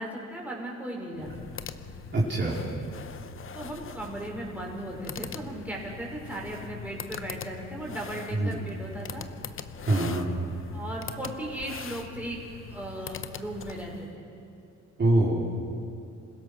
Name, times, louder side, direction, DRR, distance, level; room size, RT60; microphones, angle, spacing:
voice 1, 0.0-1.4 3.5-9.3 10.7-12.4 12.7-14.2, right 1 dB, 5° right, -3 dB, 5.3 m, -37 dB
sound 1, 1.1-14.1, left 6 dB, 45° left, 0.9 m, -42 dB
voice 2, 2.1-2.6 8.3-8.6 9.8-10.2 15.0-15.4, right 2 dB, 35° right, -5 dB, 3.7 m, -24 dB
27.0 x 16.0 x 6.3 m, 2.6 s
cardioid pair, 90°, 30 cm